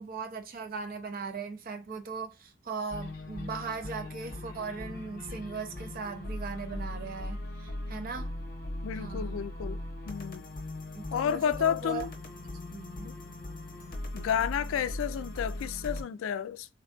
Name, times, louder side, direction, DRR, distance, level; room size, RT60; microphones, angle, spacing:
voice 1, 0.0-8.3 9.0-9.4 10.9-12.0 12.7-13.1, right 4 dB, 45° right, 0.5 m, -38 dB
sound 1, 2.9-16.0, left 1 dB, 50° left, 0.7 m, -39 dB
voice 2, 8.8-9.8 10.1-10.4 11.1-12.1 13.0-13.1 14.1-16.7, left 8 dB, 85° left, 0.3 m, -31 dB
3.5 x 2.3 x 2.4 m
head